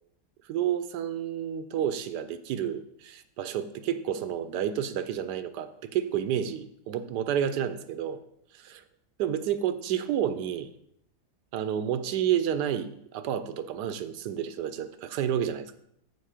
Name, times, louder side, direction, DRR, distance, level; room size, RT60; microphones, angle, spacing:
voice 1, 0.5-8.2 8.5-8.7 9.2-10.7 11.5-15.7, right 9 dB, 85° right, 12 dB, 1.2 m, -30 dB
7.6 x 6.6 x 4.9 m, 0.73 s
omnidirectional pair, 1.7 m